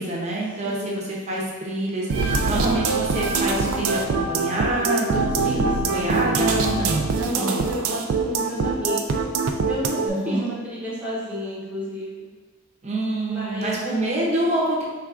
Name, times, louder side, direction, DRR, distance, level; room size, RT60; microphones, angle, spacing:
voice 1, 0.0-5.6 5.9-7.1 7.3-7.7 10.0-10.5 12.8-14.8, right 1 dB, 30° right, -4 dB, 0.7 m, -26 dB
voice 2, 0.6-1.1 5.4-6.2 7.1-9.2 9.7-12.3 13.3-13.8, equal, 5° right, -8 dB, 0.9 m, -32 dB
sound 1, 2.1-10.1, right 4 dB, 70° right, 0.4 m, -23 dB
4.7 x 3.3 x 2.5 m, 1.3 s
head